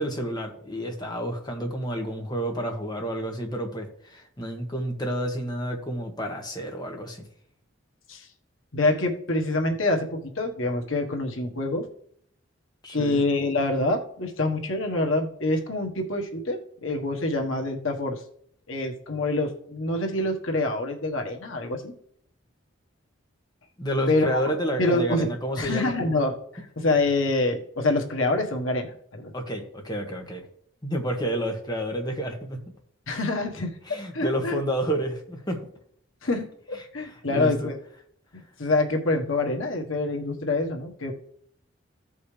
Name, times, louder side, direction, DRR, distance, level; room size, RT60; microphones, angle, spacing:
voice 1, 0.0-7.2 12.8-13.2 23.8-25.9 29.3-30.4 30.8-32.6 33.9-35.6 37.3-37.5, right 1 dB, 20° left, 2 dB, 1.5 m, -30 dB
voice 2, 8.7-11.9 12.9-18.2 18.7-21.9 24.1-24.4 24.8-25.3 25.6-29.3 33.1-33.7 34.1-34.6 36.2-37.8 38.3-41.1, left 2 dB, 85° left, 3 dB, 1.4 m, -26 dB
15.0 x 5.4 x 3.3 m, 0.66 s
head